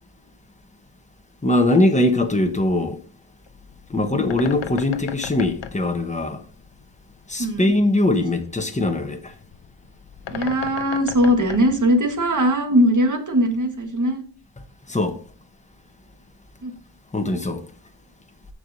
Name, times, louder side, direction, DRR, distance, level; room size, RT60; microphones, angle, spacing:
voice 1, 1.4-3.0 3.9-6.4 7.3-9.3 14.9-15.2 17.1-17.6, left 1 dB, 15° left, 1.2 m, -21 dB
Bird, 3.5-12.6, left 8 dB, 85° left, 0.8 m, -38 dB
voice 2, 3.9-4.3 7.4-7.7 10.3-14.2 16.6-16.7, equal, 45° right, 1.5 m, -20 dB
14.5 x 4.9 x 2.7 m
wide cardioid pair, 85°, 43 cm